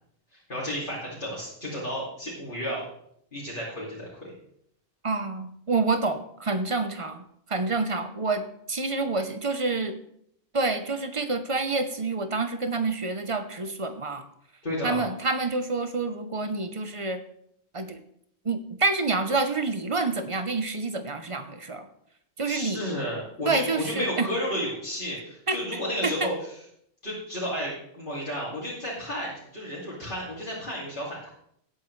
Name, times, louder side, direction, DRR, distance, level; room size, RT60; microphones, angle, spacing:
voice 1, 0.3-2.8 3.3-4.3 14.6-15.1 22.4-26.3 27.0-31.3, equal, 50° left, -8 dB, 2.9 m, -32 dB
voice 2, 5.0-10.0 10.5-14.3 14.8-17.2 17.7-18.0 18.4-21.9 22.4-22.8 23.5-24.3 25.5-25.6 26.0-26.3, right 3 dB, 35° right, 9 dB, 0.8 m, -28 dB
16.5 x 8.3 x 3.2 m, 0.70 s
omnidirectional pair, 1.1 m